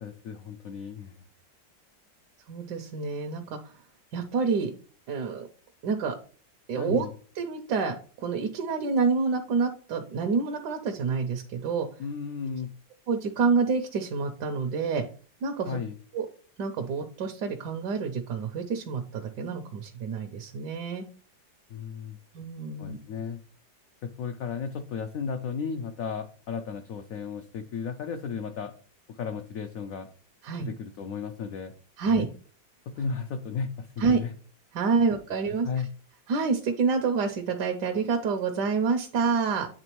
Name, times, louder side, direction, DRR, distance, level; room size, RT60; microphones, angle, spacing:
voice 1, 0.0-1.2 6.8-7.1 12.0-12.7 15.7-16.0 21.7-22.2 22.8-23.4 24.0-28.7 29.1-30.1 30.6-31.7 32.0-32.3 32.9-34.3 35.6-35.9, left 6 dB, 70° left, 6 dB, 0.8 m, -34 dB
voice 2, 2.5-3.7 4.1-4.7 5.1-5.5 5.8-6.1 6.7-7.1 7.3-11.9 13.1-15.0 15.4-15.8 16.1-16.3 16.6-21.0 22.3-23.0 30.4-30.7 32.0-32.3 34.0-34.2 34.7-35.7 36.3-39.7, right 5 dB, 70° right, 4 dB, 1.2 m, -27 dB
8.9 x 3.5 x 3.0 m, 0.41 s
omnidirectional pair, 2.0 m